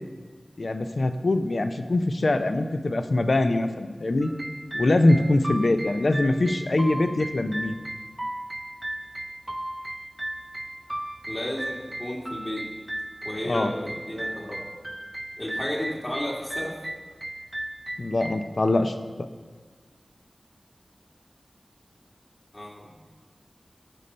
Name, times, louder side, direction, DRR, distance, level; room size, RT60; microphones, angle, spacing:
voice 1, 0.6-4.3 4.7-7.8 13.4-13.7 18.0-19.3, left 2 dB, 65° left, 8 dB, 0.6 m, -23 dB
sound 1, 4.2-18.4, right 1 dB, 20° right, 0.6 m, -36 dB
voice 2, 11.3-12.6 13.2-14.6 15.4-16.7 22.5-22.9, left 1 dB, 40° left, -4 dB, 2.3 m, -33 dB
13.5 x 5.4 x 4.3 m, 1.5 s
wide cardioid pair, 65°, 0 cm